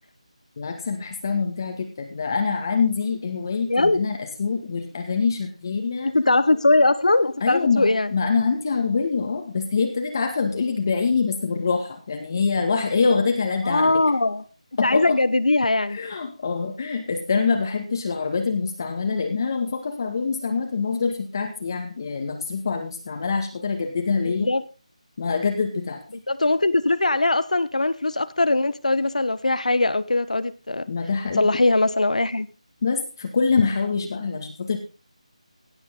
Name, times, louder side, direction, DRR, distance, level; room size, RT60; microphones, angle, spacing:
voice 1, 0.6-6.1 7.4-14.0 14.8-15.1 15.9-24.5 25.2-26.0 30.9-31.5 32.8-34.8, left 5 dB, 30° left, 3 dB, 1.9 m, -25 dB
voice 2, 3.7-4.0 6.0-8.1 13.6-14.4 14.8-16.0 24.2-24.6 26.1-30.9 31.4-32.5, left 2 dB, 85° left, 15 dB, 1.3 m, -21 dB
16.5 x 8.5 x 3.9 m, 0.34 s
figure-of-eight pair, 170°, 4 cm